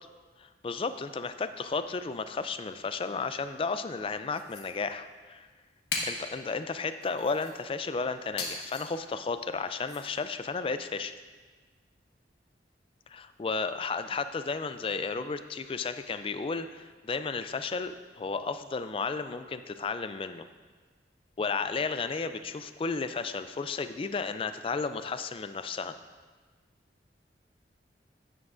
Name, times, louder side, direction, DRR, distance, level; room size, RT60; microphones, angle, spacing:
voice 1, 0.4-5.5 6.0-11.1 13.1-20.4 21.4-26.0, left 4 dB, 30° left, 11 dB, 0.3 m, -33 dB
sound 1, 4.3-4.6 5.9-6.3 7.0-7.6 8.4-8.9 9.9-10.0, left 3 dB, 70° left, 1.4 m, -36 dB
11.0 x 9.5 x 2.5 m, 1.4 s
head